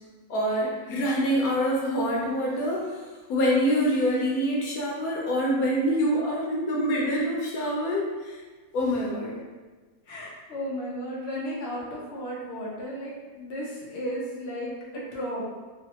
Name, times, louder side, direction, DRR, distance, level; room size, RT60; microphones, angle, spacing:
voice 1, 0.3-2.9 3.3-8.4 8.7-9.4, equal, 90° left, -3 dB, 1.1 m, -25 dB
voice 2, 10.1-15.4, equal, 55° left, -5 dB, 0.8 m, -34 dB
3.1 x 2.1 x 2.8 m, 1.4 s
omnidirectional pair, 1.5 m